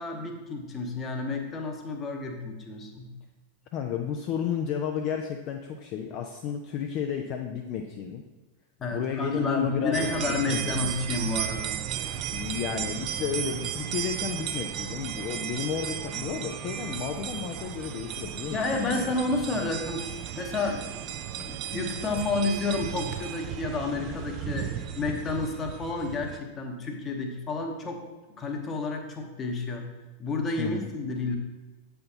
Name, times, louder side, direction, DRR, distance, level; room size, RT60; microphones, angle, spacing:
voice 1, 0.0-3.1 8.8-11.8 18.5-20.1 20.4-28.0 28.4-29.9 30.2-31.4, left 3 dB, 25° left, 3 dB, 0.9 m, -30 dB
voice 2, 3.7-8.2 8.9-10.9 12.3-19.1 30.6-30.9, left 8 dB, 40° left, 4 dB, 0.4 m, -32 dB
sound 1, 9.9-26.4, right 10 dB, 40° right, 0.4 m, -35 dB
7.6 x 5.7 x 2.8 m, 1.2 s
figure-of-eight pair, 90°, 0 cm